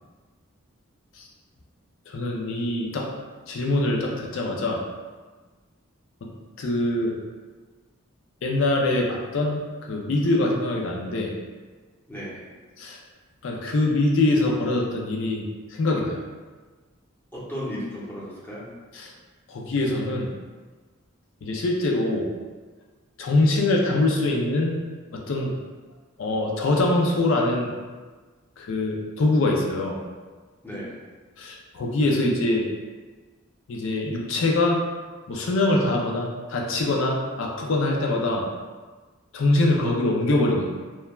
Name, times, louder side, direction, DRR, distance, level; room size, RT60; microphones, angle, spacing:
voice 1, 2.1-3.1 3.5-4.8 6.2-6.3 6.6-7.1 8.4-11.3 12.8-13.0 13.4-15.5 15.8-16.2 19.0-19.1 19.5-20.3 21.4-22.3 23.2-24.8 25.1-25.5 26.2-27.7 28.6-30.0 31.4-32.7 33.7-34.8 35.3-38.4 39.3-40.7, left 2 dB, 65° left, -1 dB, 0.4 m, -23 dB
voice 2, 12.1-12.5 17.3-18.7 30.6-31.0, equal, 10° left, -8 dB, 0.7 m, -34 dB
3.1 x 2.1 x 2.3 m, 1.4 s
head